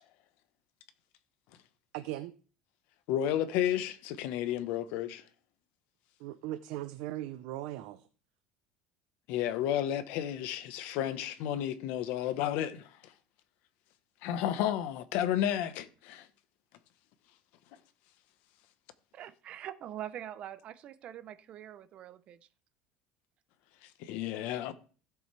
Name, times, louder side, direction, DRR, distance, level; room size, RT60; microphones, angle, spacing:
voice 1, 1.9-2.3 6.2-8.1, right 14 dB, 70° right, 0.7 m, -39 dB
voice 2, 3.1-5.2 9.3-12.9 14.2-16.3 24.0-24.7, left 11 dB, 60° left, 1.2 m, -32 dB
voice 3, 19.1-22.4, right 11 dB, 35° right, 0.7 m, -44 dB
16.0 x 7.0 x 3.4 m
cardioid pair, 160°, 3 cm